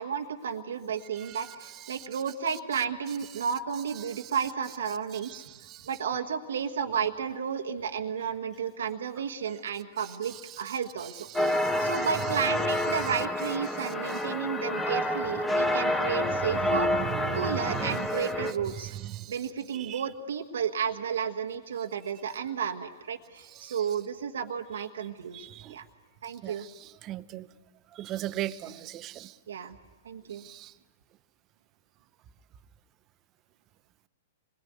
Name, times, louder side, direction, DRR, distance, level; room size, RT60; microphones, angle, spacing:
voice 1, 0.0-5.4 5.8-11.1 11.4-16.9 17.3-19.0 19.3-25.8 26.2-26.6 29.5-29.8 30.0-30.5, right 7 dB, 75° right, 5 dB, 1.4 m, -32 dB
voice 2, 5.2-5.9 11.3-11.9 16.6-18.0 18.9-19.3 19.7-20.0 23.6-23.8 25.3-25.7 26.4-26.5 27.0-27.5 27.9-29.3 30.4-30.7, right 13 dB, 35° right, 13 dB, 0.9 m, -37 dB
sound 1, 11.3-18.5, left 1 dB, 10° left, 1.8 m, -28 dB
26.5 x 21.5 x 9.5 m, 1.5 s
hypercardioid pair, 115°, 0 cm